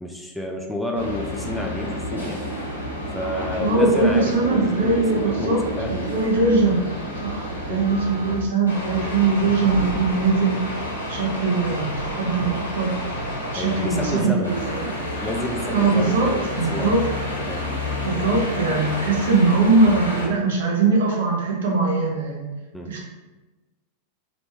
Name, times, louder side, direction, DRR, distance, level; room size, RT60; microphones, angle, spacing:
voice 1, 0.0-2.4 3.1-6.2 7.7-7.8 13.6-14.6 15.2-17.0 17.5-17.6 22.7-22.9, left 1 dB, 5° left, 1 dB, 0.3 m, -30 dB
sound 1, 0.9-8.4 8.7-14.2 14.4-20.3, equal, 85° left, 1.2 m, -30 dB
voice 2, 3.6-5.6 6.1-6.9 7.2-10.6 11.1-12.9 13.5-14.9 15.7-17.1 17.4-17.5 18.0-22.5 22.9-23.1, right 3 dB, 60° right, -1 dB, 0.8 m, -21 dB
3.1 x 3.0 x 3.1 m, 1.2 s
figure-of-eight pair, 90°, 0 cm